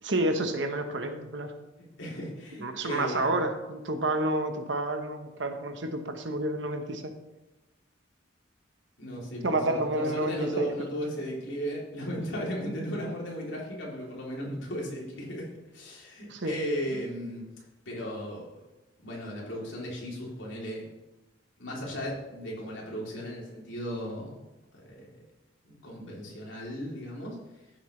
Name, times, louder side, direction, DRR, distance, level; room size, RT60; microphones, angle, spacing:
voice 1, 0.0-1.5 2.6-7.1 9.4-10.7 16.3-16.5, right 1 dB, 65° right, 6 dB, 1.2 m, -29 dB
voice 2, 2.0-3.3 9.0-17.4 17.8-18.6 19.0-20.9 21.6-24.4 24.7-25.1 25.6-27.4, equal, 75° left, -4 dB, 3.3 m, -36 dB
14.5 x 7.6 x 3.3 m, 1.0 s
head